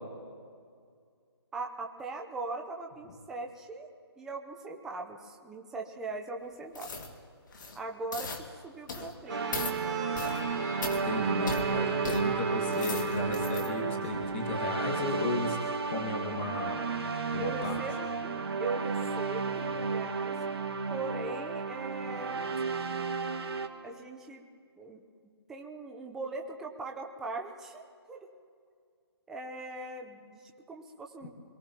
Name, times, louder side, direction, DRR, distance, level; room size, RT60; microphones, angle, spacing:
voice 1, 1.5-3.9 4.2-6.9 7.7-9.7 17.4-20.4 20.9-22.4 23.8-24.5 24.8-25.0 25.5-27.8 28.1-28.3 29.3-31.3, right 3 dB, 5° right, 1 dB, 0.7 m, -40 dB
sound 1, 6.7-7.1 7.5-7.8 8.1-8.4 8.9-9.1 9.5-9.8 10.1-10.4 10.8-11.0 11.5-11.6 12.0-12.2 12.6-13.7 14.1-14.3, left 4 dB, 45° left, 2.0 m, -38 dB
Bowed string instrument, 9.3-13.9, right 7 dB, 25° right, 4.7 m, -37 dB
sound 2, 9.3-23.7, right 4 dB, 65° right, 1.8 m, -33 dB
voice 2, 10.9-15.6 15.9-16.8 17.3-17.8, left 2 dB, 25° left, 1 dB, 1.7 m, -34 dB
26.5 x 18.0 x 2.9 m, 2.2 s
hypercardioid pair, 160°, 14 cm